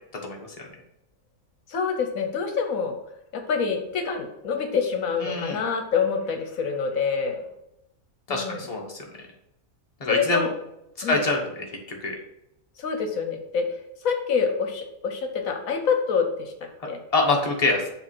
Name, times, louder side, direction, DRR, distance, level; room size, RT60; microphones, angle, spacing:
voice 1, 1.7-3.0 3.3-7.5 8.3-8.7 10.1-10.5 11.0-11.2 12.8-13.7 14.0-16.5 16.9-17.0, left 5 dB, 75° left, 5 dB, 1.3 m, -26 dB
voice 2, 5.2-5.6 8.3-9.0 10.0-10.5 11.0-11.7 12.0-12.2 17.1-17.8, left 3 dB, 25° left, -1 dB, 1.4 m, -25 dB
7.1 x 3.5 x 6.0 m, 0.83 s
omnidirectional pair, 1.4 m